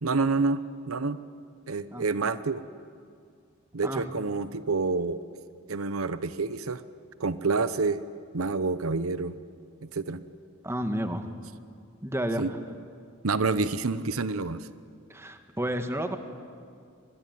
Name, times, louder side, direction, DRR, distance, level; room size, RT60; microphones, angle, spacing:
voice 1, 0.0-1.2 1.7-2.6 3.7-5.2 5.7-6.8 7.2-8.0 8.3-9.4 9.8-10.2 12.4-12.5 13.2-14.7, right 4 dB, 90° right, 13 dB, 0.9 m, -28 dB
voice 2, 10.6-11.2 12.0-12.6 15.1-16.2, equal, 10° right, 7 dB, 1.6 m, -31 dB
25.0 x 21.5 x 9.3 m, 2.3 s
head